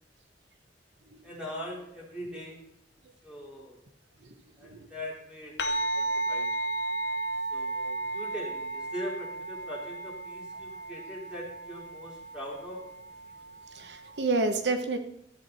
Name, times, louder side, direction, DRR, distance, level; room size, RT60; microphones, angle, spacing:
voice 1, 1.2-2.6 3.2-3.8 4.6-6.5 7.5-12.8, equal, 5° right, -4 dB, 3.9 m, -41 dB
voice 2, 4.2-4.9 13.7-15.0, right 3 dB, 80° right, 7 dB, 1.0 m, -30 dB
sound 1, 5.6-14.3, right 2 dB, 70° left, 1.0 m, -34 dB
14.0 x 8.2 x 4.0 m, 0.79 s
head